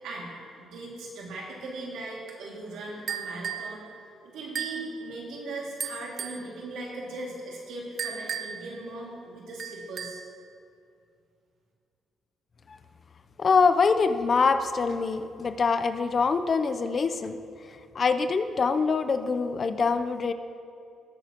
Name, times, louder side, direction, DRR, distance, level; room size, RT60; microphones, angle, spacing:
voice 1, 0.0-3.8 4.2-10.2, right 2 dB, 85° right, -3 dB, 2.3 m, -39 dB
sound 1, 3.1-3.7 4.5-4.9 5.8-6.4 8.0-8.7 9.6-10.3, right 7 dB, 55° right, 0.6 m, -34 dB
voice 2, 13.4-17.4 17.9-20.3, left 5 dB, 40° left, 10 dB, 0.6 m, -24 dB
19.5 x 7.0 x 3.0 m, 2.4 s
cardioid pair, 90°, 0 cm